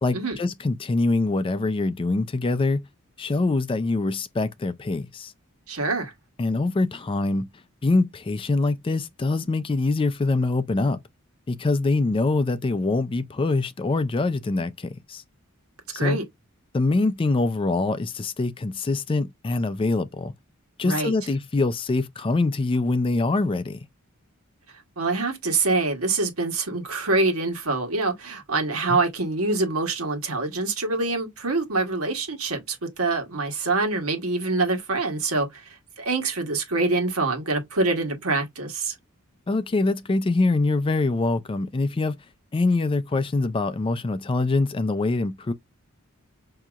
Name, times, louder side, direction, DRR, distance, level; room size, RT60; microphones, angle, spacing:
voice 1, 0.0-2.8 3.2-5.3 6.4-7.5 7.8-11.0 11.5-15.2 15.9-16.2 16.7-20.3 20.8-23.8 28.9-29.0 39.5-42.2 42.5-45.5, left 3 dB, 25° left, 0.4 m, -24 dB
voice 2, 5.7-6.1 15.9-16.2 20.8-21.1 25.0-38.9, right 3 dB, 80° right, 1.3 m, -25 dB
6.0 x 2.8 x 2.3 m
head